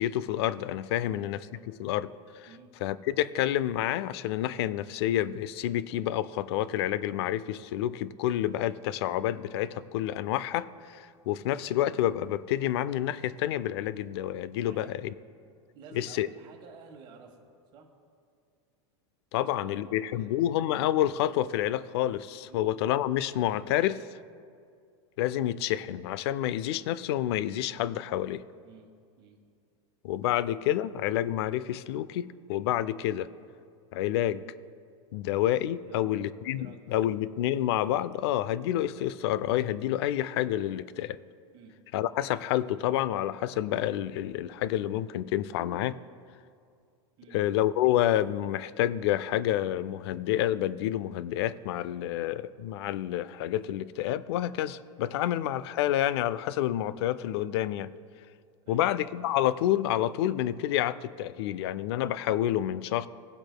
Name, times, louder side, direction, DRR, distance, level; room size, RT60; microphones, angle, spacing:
voice 1, 0.0-2.1 2.3-2.5 2.8-15.1 15.9-16.3 19.3-24.2 25.2-28.4 30.0-33.3 33.9-34.4 35.1-41.2 41.9-46.0 47.3-57.9 58.7-63.1, left 12 dB, 60° left, 17 dB, 0.4 m, -29 dB
voice 2, 14.6-14.9 15.7-17.5 17.7-17.9 19.3-20.4 22.4-22.7 28.6-29.4 35.8-36.8 41.5-41.7 47.2-47.4 58.6-58.9, right 5 dB, 30° right, 1 dB, 1.3 m, -52 dB
18.5 x 7.7 x 2.2 m, 2.2 s
supercardioid pair, 160°, 15 cm